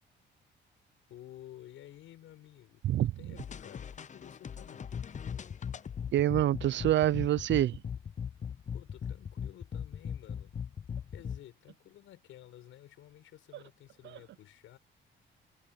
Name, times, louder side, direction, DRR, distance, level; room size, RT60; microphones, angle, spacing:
voice 1, 1.1-4.9 8.7-10.6 11.1-14.8, left 13 dB, 80° left, 7.8 m, -53 dB
sound 1, 3.4-11.4, left 7 dB, 35° left, 0.7 m, -39 dB
voice 2, 6.1-7.8 14.0-14.2, right 13 dB, 65° right, 0.6 m, -26 dB
cardioid pair, 90°, 20 cm